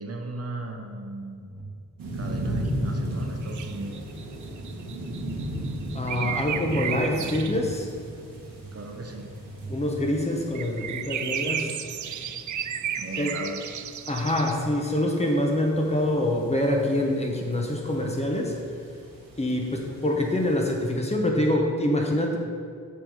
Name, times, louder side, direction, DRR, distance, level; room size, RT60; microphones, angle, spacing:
voice 1, 0.0-1.5 2.1-4.0 8.7-9.3 13.0-13.5, right 2 dB, 45° right, 2 dB, 0.9 m, -36 dB
sound 1, 0.9-10.0, right 1 dB, ahead, 1.7 m, -46 dB
sound 2, 2.0-20.9, right 1 dB, 80° right, 1.6 m, -37 dB
sound 3, 3.4-7.6 10.5-14.6, right 8 dB, 60° right, 0.5 m, -33 dB
voice 2, 5.9-7.9 9.7-11.8 13.1-13.4 14.1-18.5 19.4-22.4, left 1 dB, 20° left, 0 dB, 1.1 m, -25 dB
7.8 x 3.5 x 6.3 m, 2.2 s
cardioid pair, 70°, 34 cm